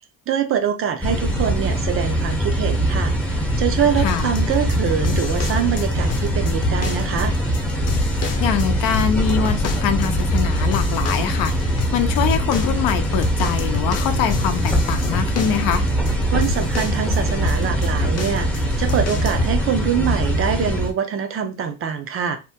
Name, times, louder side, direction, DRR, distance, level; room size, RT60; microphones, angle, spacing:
voice 1, 0.3-7.3 16.3-22.4, right 8 dB, 40° right, 0.5 m, -24 dB
sound 1, 1.0-20.9, equal, 5° left, 0.6 m, -22 dB
voice 2, 4.0-4.3 8.4-15.9, left 9 dB, 75° left, 0.6 m, -23 dB
sound 2, 4.1-19.6, left 4 dB, 45° left, 0.8 m, -30 dB
2.8 x 2.1 x 3.4 m
cardioid pair, 120°, 35 cm